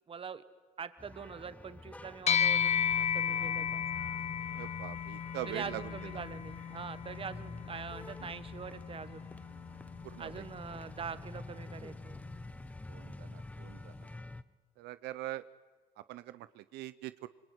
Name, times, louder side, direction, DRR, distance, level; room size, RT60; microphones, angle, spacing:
voice 1, 0.1-0.4 0.8-3.8 5.5-9.3 10.2-12.2, right 6 dB, 35° right, 13 dB, 1.5 m, -43 dB
sound 1, 1.0-14.4, left 2 dB, 10° left, 0.9 m, -49 dB
sound 2, 2.3-11.9, left 8 dB, 40° left, 0.7 m, -35 dB
voice 2, 4.6-6.2 8.2-8.3 10.0-10.4 12.9-14.1 14.8-15.4 16.1-17.3, right 15 dB, 85° right, 14 dB, 0.8 m, -43 dB
26.0 x 22.0 x 9.6 m, 1.3 s
cardioid pair, 110°, 17 cm